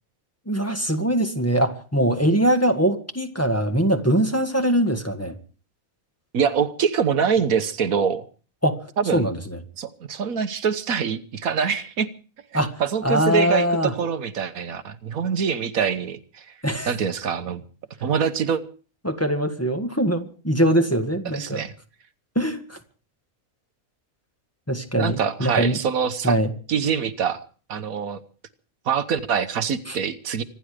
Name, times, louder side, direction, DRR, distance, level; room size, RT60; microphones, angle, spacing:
voice 1, 0.5-5.3 8.6-8.8 9.1-9.6 12.5-12.7 13.0-13.9 16.6-16.9 19.0-21.6 22.4-22.8 24.7-25.8 26.2-26.5 29.9-30.0, right 1 dB, 10° left, 6 dB, 1.7 m, -22 dB
voice 2, 6.3-8.3 9.0-9.3 9.8-12.1 12.5-16.5 16.9-17.6 18.0-18.6 21.2-21.7 24.9-26.4 26.7-27.4 27.7-28.2 28.8-30.4, right 7 dB, 75° right, 11 dB, 1.5 m, -24 dB
25.5 x 11.0 x 5.0 m, 0.39 s
omnidirectional pair, 1.5 m